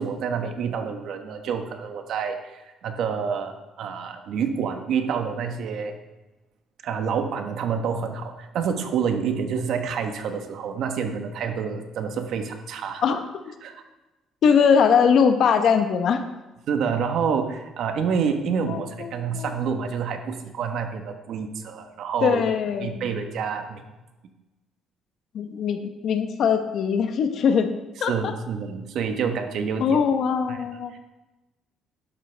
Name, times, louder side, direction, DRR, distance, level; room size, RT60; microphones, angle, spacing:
voice 1, 0.0-6.0 6.8-13.0 13.6-13.7 16.7-22.4 22.8-23.8 28.1-30.0 30.5-30.6 30.9-31.0, right 6 dB, 60° right, 6 dB, 1.2 m, -28 dB
voice 2, 14.4-16.2 18.7-19.5 22.2-23.0 25.3-27.7 28.0-28.3 29.8-30.9, left 6 dB, 55° left, 8 dB, 1.0 m, -21 dB
11.5 x 11.5 x 3.4 m, 1.1 s
cardioid pair, 135°, 0 cm